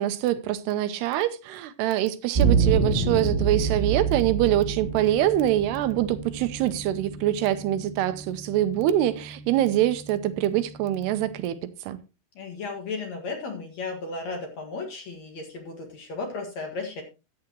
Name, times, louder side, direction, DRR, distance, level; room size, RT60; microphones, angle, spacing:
voice 1, 0.0-12.0, right 12 dB, 80° right, 2.7 m, -24 dB
sound 1, 2.3-11.4, right 5 dB, 25° right, 1.6 m, -29 dB
voice 2, 12.4-17.0, left 3 dB, 50° left, 2.4 m, -34 dB
14.5 x 8.8 x 2.9 m
omnidirectional pair, 4.8 m